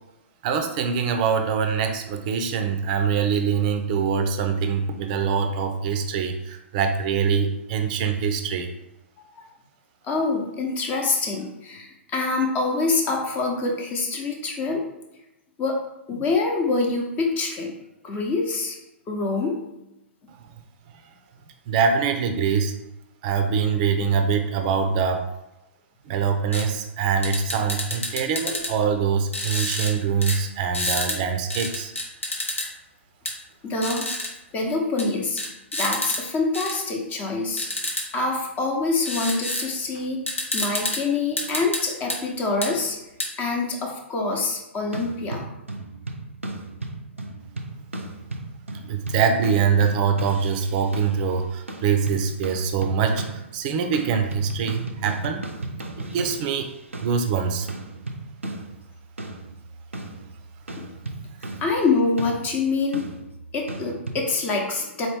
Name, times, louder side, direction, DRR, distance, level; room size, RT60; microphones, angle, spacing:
voice 1, 0.4-8.7 21.7-22.7 23.2-25.2 26.1-31.9 48.8-55.4 56.0-56.7 57.0-57.7, right 6 dB, 40° right, 6 dB, 0.5 m, -24 dB
voice 2, 10.0-14.8 15.6-15.8 16.1-17.7 18.0-18.7 19.1-19.6 33.6-34.1 34.5-35.4 35.7-37.7 38.1-40.2 40.5-43.0 43.4-45.5 60.8-60.9 61.6-63.0 63.5-65.1, left 3 dB, 25° left, 1 dB, 0.8 m, -25 dB
sound 1, 26.5-26.6 27.2-28.7 29.3-29.9 30.2-30.4 30.7-31.2 31.5-32.7 33.3-33.4 33.8-34.3 35.0-35.1 35.4-36.2 36.5-36.7 37.6-38.0 39.1-39.7 40.0-40.1 40.3-41.0 41.4-42.2 42.6-42.7 43.2-43.3, left 1 dB, 90° left, 0.9 m, -28 dB
sound 2, 44.8-51.3 51.7-53.6 53.9-64.2, right 2 dB, 85° right, 0.5 m, -36 dB
4.1 x 2.9 x 3.4 m, 0.90 s
figure-of-eight pair, 115°, 7 cm